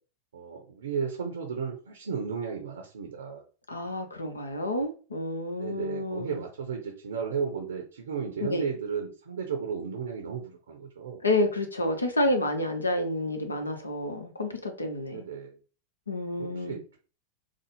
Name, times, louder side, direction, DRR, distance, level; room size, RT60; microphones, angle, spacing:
voice 1, 0.3-3.4 5.6-11.2 15.1-15.6 16.4-17.0, right 6 dB, 65° right, 0.6 m, -34 dB
voice 2, 3.7-6.4 8.4-8.7 11.2-15.2 16.1-16.8, left 1 dB, 80° left, 0.6 m, -29 dB
4.0 x 2.0 x 3.1 m
figure-of-eight pair, 90°, 0 cm